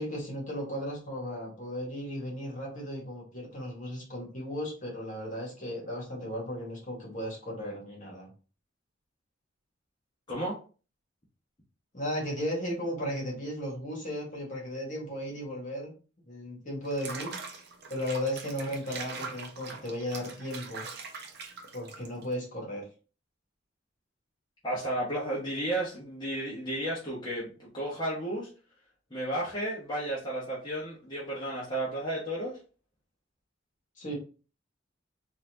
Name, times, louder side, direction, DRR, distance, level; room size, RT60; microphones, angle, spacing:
voice 1, 0.0-8.3 11.9-15.9 16.3-17.6 17.9-20.9 21.7-22.8 34.0-34.1, equal, 40° left, -2 dB, 1.7 m, -35 dB
Water / Bathtub (filling or washing), 16.8-22.3, right 4 dB, 55° right, 0.7 m, -42 dB
voice 2, 24.6-28.5 29.1-32.6, right 1 dB, 25° left, -8 dB, 1.1 m, -33 dB
4.1 x 2.6 x 2.8 m, 0.36 s
head